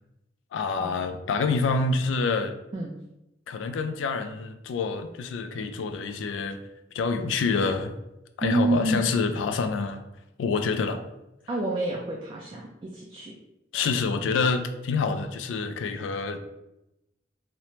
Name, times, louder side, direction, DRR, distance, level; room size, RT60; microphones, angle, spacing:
voice 1, 0.5-2.5 3.5-6.6 6.9-7.9 8.4-10.0 10.4-11.0 13.7-16.4, left 4 dB, 80° left, 8 dB, 0.3 m, -27 dB
voice 2, 8.4-9.0 11.5-13.3, right 2 dB, 25° right, -2 dB, 0.3 m, -28 dB
3.1 x 2.0 x 2.8 m, 0.90 s
head